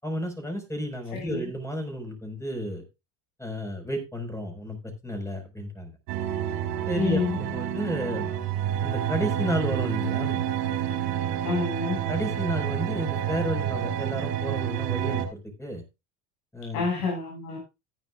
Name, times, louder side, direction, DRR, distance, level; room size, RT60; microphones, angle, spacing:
voice 1, 0.0-2.8 3.4-6.0 6.9-8.3 8.8-10.4 12.1-15.8 16.5-16.8, equal, 5° left, 4 dB, 5.4 m, -32 dB
sound 1, 6.1-15.3, right 10 dB, 75° right, 3.6 m, -29 dB
voice 2, 6.9-7.4 11.4-12.0 16.7-17.6, left 4 dB, 75° left, -1 dB, 7.1 m, -28 dB
15.5 x 9.9 x 2.5 m, 0.26 s
hypercardioid pair, 70°, 47 cm